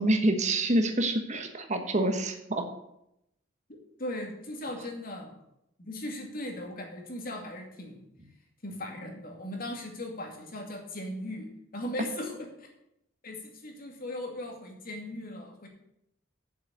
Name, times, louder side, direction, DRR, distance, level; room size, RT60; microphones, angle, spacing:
voice 1, 0.0-2.7, right 1 dB, 40° right, 6 dB, 1.2 m, -27 dB
voice 2, 4.0-5.3 5.8-8.0 8.6-12.7 13.2-15.7, left 1 dB, 50° left, 2 dB, 2.4 m, -38 dB
7.8 x 7.3 x 8.0 m, 0.81 s
head